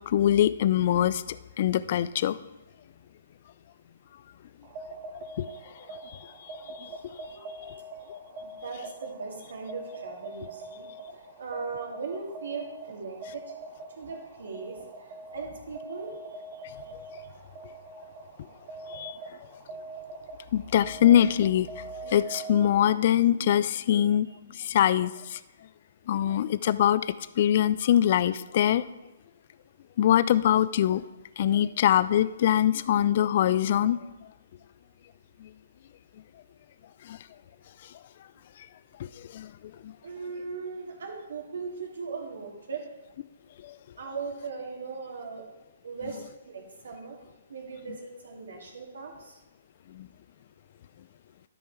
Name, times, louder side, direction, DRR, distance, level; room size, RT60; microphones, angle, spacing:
voice 1, 0.1-1.2 1.6-2.4 5.4-5.5 6.8-6.9 7.6-7.7 8.1-8.2 18.9-19.1 20.5-21.7 22.1-24.3 24.6-25.4 26.1-27.1 27.4-28.8 30.0-31.0 31.4-34.0 37.1-37.2 39.3-39.5 39.8-39.9 43.6-43.7 50.0-50.1, left 11 dB, 50° left, 16 dB, 0.4 m, -23 dB
sound 1, 4.6-23.1, right 3 dB, 35° right, 1.1 m, -43 dB
voice 2, 7.2-7.8 8.4-10.9 11.1-13.5 14.0-16.6 31.4-31.5 40.0-42.9 44.0-45.4 45.8-47.2 47.5-49.4, right 4 dB, 70° right, 1 dB, 2.3 m, -39 dB
12.5 x 5.4 x 4.6 m, 1.0 s
figure-of-eight pair, 130°, 0 cm